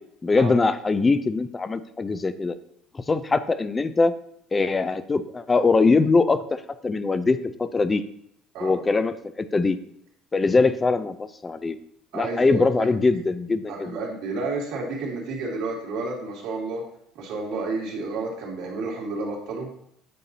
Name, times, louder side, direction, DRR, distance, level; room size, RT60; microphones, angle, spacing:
voice 1, 0.2-2.6 2.9-4.1 4.5-6.4 6.8-8.0 8.6-9.8 10.3-11.8 12.1-14.0, left 3 dB, 20° left, 12 dB, 0.5 m, -22 dB
voice 2, 12.1-12.9 13.7-16.8 17.1-19.7, right 3 dB, 75° right, -2 dB, 2.4 m, -31 dB
8.5 x 5.8 x 2.8 m, 0.72 s
cardioid pair, 115°, 0 cm